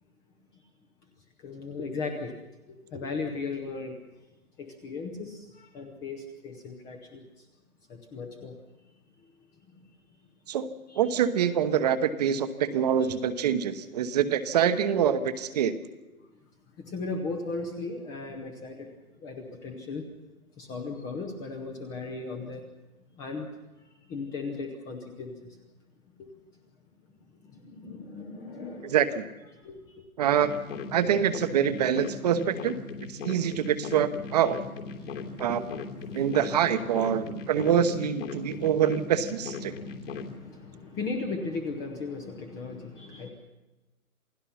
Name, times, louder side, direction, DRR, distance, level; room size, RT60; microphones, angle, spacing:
voice 1, 1.4-2.3 2.7-4.0 4.6-7.5 7.9-8.6 9.2-9.3 10.9-11.0 13.0-13.2 16.8-18.9 19.2-20.0 20.6-22.6 23.2-23.5 24.1-25.4 26.2-26.3 27.4-28.9 29.6-30.0 34.9-36.6 37.2-37.9 38.5-38.8 39.6-43.3, left 3 dB, 10° left, 4 dB, 0.7 m, -37 dB
voice 2, 11.0-15.7 28.9-29.3 30.2-30.5 30.9-32.7 33.2-34.6 35.4-35.6 36.1-39.7, right 9 dB, 30° right, 11 dB, 1.0 m, -25 dB
sound 1, 30.4-40.3, left 4 dB, 55° left, 3.1 m, -38 dB
28.0 x 17.5 x 5.8 m, 1.1 s
hypercardioid pair, 150°, 44 cm